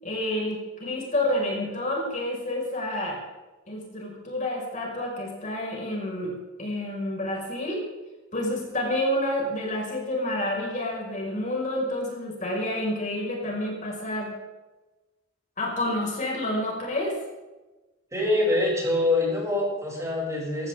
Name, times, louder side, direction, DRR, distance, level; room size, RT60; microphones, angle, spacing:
voice 1, 0.0-3.2 3.7-7.9 8.3-14.3 15.6-17.2, left 1 dB, 40° left, -1 dB, 5.5 m, -29 dB
voice 2, 18.1-20.7, left 2 dB, 15° right, -3 dB, 7.2 m, -25 dB
22.5 x 16.0 x 3.7 m, 1.1 s
head